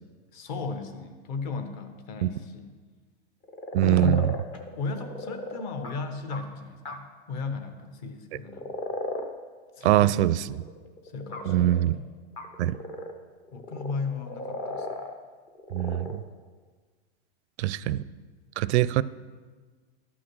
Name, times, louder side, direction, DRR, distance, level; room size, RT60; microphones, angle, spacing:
voice 1, 0.3-2.7 3.8-4.3 4.8-8.7 9.8-10.1 11.0-12.1 13.5-15.0, left 4 dB, 45° left, 7 dB, 1.2 m, -35 dB
sound 1, 3.4-6.4 6.9-7.0 8.4-9.3 9.7-11.9 12.4-13.1 13.4-15.1 15.5-16.2, left 2 dB, 15° left, 0.4 m, -36 dB
voice 2, 3.7-4.2 9.8-10.6 11.5-11.9 12.6-12.8 15.7-16.2 17.6-18.0 18.6-19.0, right 14 dB, 80° right, 18 dB, 0.5 m, -23 dB
12.0 x 6.1 x 6.2 m, 1.5 s
supercardioid pair, 170°, 33 cm